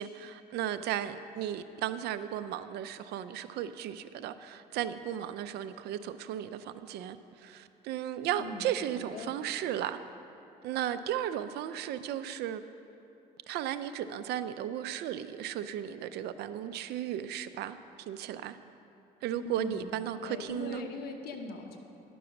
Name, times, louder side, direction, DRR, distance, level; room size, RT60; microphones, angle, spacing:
voice 1, 0.0-10.0 10.6-12.6 13.5-18.6 19.2-20.8, right 11 dB, 75° right, 12 dB, 0.4 m, -35 dB
voice 2, 8.4-9.3 19.4-19.9 20.2-21.8, left 4 dB, 65° left, 3 dB, 1.1 m, -41 dB
11.0 x 6.2 x 5.9 m, 2.8 s
cardioid pair, 110°, 17 cm